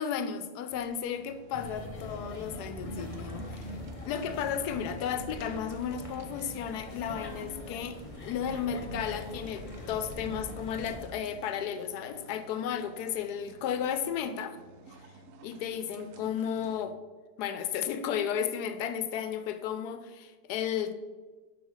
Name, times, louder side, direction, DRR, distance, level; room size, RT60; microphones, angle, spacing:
voice 1, 0.0-14.6 15.4-17.0 17.4-21.0, left 8 dB, 80° left, 10 dB, 1.2 m, -34 dB
sound 1, 0.7-16.7, right 2 dB, 65° right, 0.9 m, -54 dB
sound 2, 1.5-11.1, left 1 dB, 30° left, 0.6 m, -42 dB
5.4 x 5.1 x 6.2 m, 1.4 s
omnidirectional pair, 1.7 m